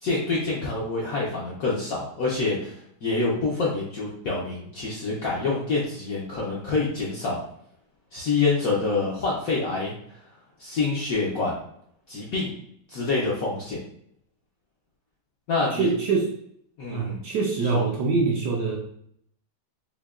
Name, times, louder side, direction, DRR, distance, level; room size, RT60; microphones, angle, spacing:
voice 1, 0.0-7.4 8.1-10.2 10.6-11.6 12.1-12.5 12.9-13.8 15.5-15.9 16.8-17.2 17.7-17.8, left 3 dB, 70° left, -4 dB, 0.8 m, -26 dB
voice 2, 15.7-16.3 16.9-18.8, right 4 dB, 75° right, 0 dB, 1.0 m, -24 dB
5.5 x 2.1 x 2.3 m, 0.69 s
omnidirectional pair, 2.1 m